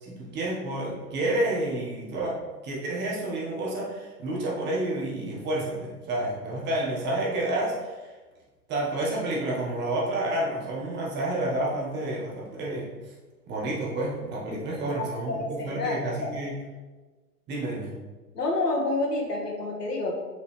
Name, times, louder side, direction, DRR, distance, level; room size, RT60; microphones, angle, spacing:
voice 1, 0.0-2.3 2.6-8.1 8.7-12.9 13.5-16.5 17.5-17.9, right 1 dB, 20° right, -4 dB, 1.6 m, -29 dB
voice 2, 15.0-16.3 18.3-20.1, left 2 dB, 75° left, -1 dB, 1.9 m, -29 dB
6.9 x 5.3 x 3.4 m, 1.3 s
figure-of-eight pair, 120°, 48 cm